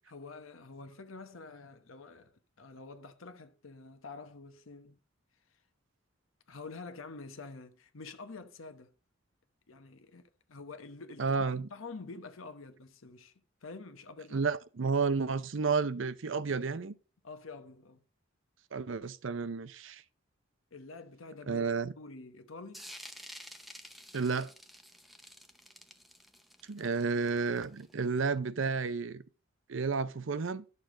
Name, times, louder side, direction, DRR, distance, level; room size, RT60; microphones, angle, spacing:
voice 1, 0.1-5.0 6.5-8.9 9.7-11.4 11.7-13.3 13.6-14.4 17.2-18.0 20.7-22.9, left 3 dB, 80° left, 1.0 m, -47 dB
voice 2, 11.2-11.7 14.3-16.9 18.7-20.0 21.5-21.9 24.1-24.5 26.7-29.2 29.7-30.6, right 4 dB, 70° right, 0.6 m, -31 dB
sound 1, 22.7-28.1, equal, ahead, 0.7 m, -50 dB
11.0 x 6.7 x 3.8 m
head